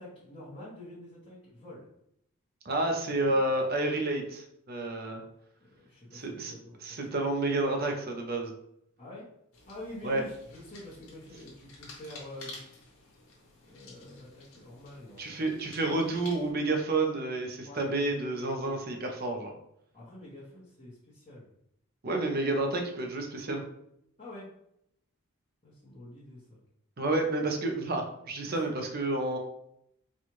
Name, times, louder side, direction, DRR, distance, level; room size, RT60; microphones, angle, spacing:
voice 1, 0.0-1.9 3.1-3.5 5.7-7.2 9.0-9.3 9.7-12.6 13.6-15.4 17.6-17.9 19.9-21.5 24.2-24.5 25.6-26.6 28.5-28.6, left 1 dB, 30° left, -10 dB, 1.0 m, -47 dB
voice 2, 2.6-5.2 6.1-8.5 10.0-10.2 15.2-19.5 22.0-23.6 27.0-29.4, right 2 dB, 45° right, 3 dB, 0.6 m, -30 dB
sound 1, 9.5-16.5, left 2 dB, 80° left, 1.2 m, -51 dB
4.3 x 2.4 x 3.0 m, 0.75 s
head